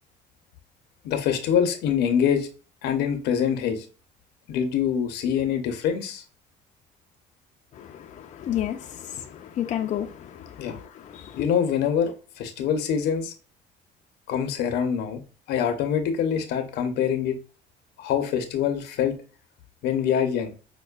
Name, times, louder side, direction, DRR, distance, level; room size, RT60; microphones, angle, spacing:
voice 1, 1.0-2.5 2.8-3.8 4.5-6.2 10.6-10.8 11.4-13.3 14.3-15.2 15.5-17.4 18.0-19.2 19.8-20.5, left 8 dB, 80° left, 0.7 m, -25 dB
voice 2, 7.7-11.4, left 11 dB, 45° left, 0.4 m, -32 dB
5.2 x 2.1 x 2.3 m
cardioid pair, 110°, 17 cm